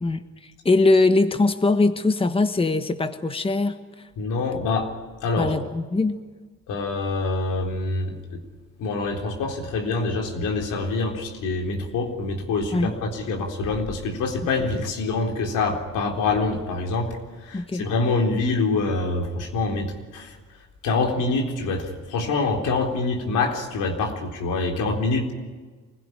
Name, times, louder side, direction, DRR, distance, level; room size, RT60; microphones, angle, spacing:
voice 1, 0.0-4.1 5.4-6.2 12.7-12.9 17.5-17.9, left 3 dB, 20° left, 8 dB, 1.4 m, -22 dB
voice 2, 4.2-4.9 5.2-5.5 6.7-8.4 8.8-17.2 17.4-20.4 20.8-25.3, left 3 dB, 85° left, 2 dB, 3.9 m, -25 dB
25.0 x 16.5 x 10.0 m, 1.4 s
cardioid pair, 90°, 30 cm